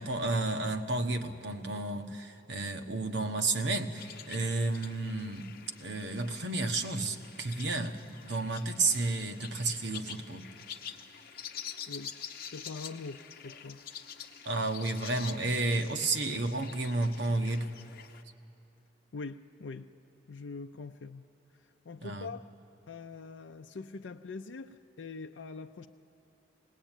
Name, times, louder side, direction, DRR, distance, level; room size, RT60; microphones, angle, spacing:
voice 1, 0.0-10.5 14.4-17.7 22.0-22.3, right 2 dB, 65° right, 6 dB, 1.2 m, -32 dB
sound 1, 4.0-18.2, left 8 dB, 55° left, 1.0 m, -47 dB
voice 2, 12.5-13.8 19.1-19.9 20.3-21.3 21.5-22.4 22.9-25.9, left 4 dB, 85° left, 5 dB, 0.5 m, -43 dB
19.5 x 19.0 x 9.0 m, 2.6 s
head